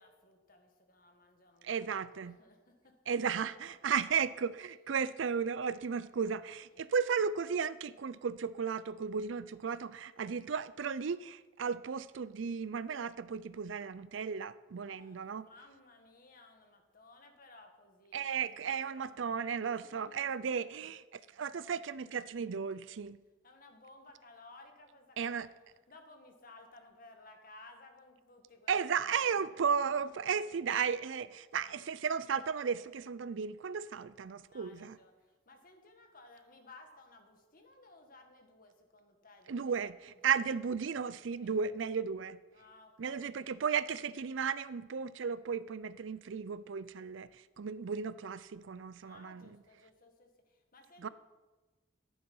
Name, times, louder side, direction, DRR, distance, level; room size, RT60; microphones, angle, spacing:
voice 1, 0.0-3.2 3.6-4.1 4.4-5.0 6.5-6.8 14.8-20.6 22.8-22.9 23.4-30.7 34.5-40.8 41.4-41.6 42.5-43.6 49.0-51.1, left 2 dB, 45° left, 4 dB, 1.8 m, -59 dB
voice 2, 1.6-2.4 3.1-15.4 18.1-23.2 25.2-25.5 28.7-35.0 39.5-42.4 43.0-49.5 51.0-51.1, right 6 dB, 75° right, 16 dB, 0.5 m, -35 dB
13.5 x 9.6 x 5.5 m, 1.2 s
head